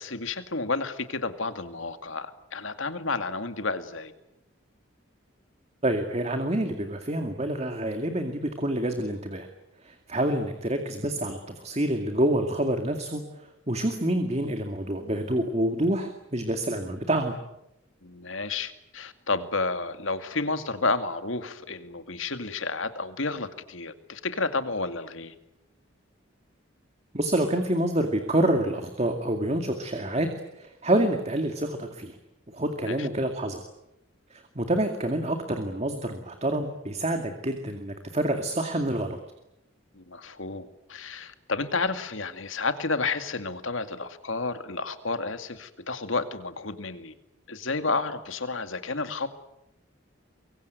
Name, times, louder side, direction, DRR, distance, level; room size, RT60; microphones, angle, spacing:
voice 1, 0.0-4.1 18.0-25.3 32.9-33.1 39.9-47.1 47.5-49.3, left 3 dB, 75° left, 9 dB, 2.3 m, -31 dB
voice 2, 5.8-9.5 9.8-17.3 27.1-32.2 32.5-33.6 34.3-39.2, right 1 dB, 30° right, 6 dB, 2.3 m, -27 dB
24.5 x 23.5 x 9.4 m, 0.86 s
head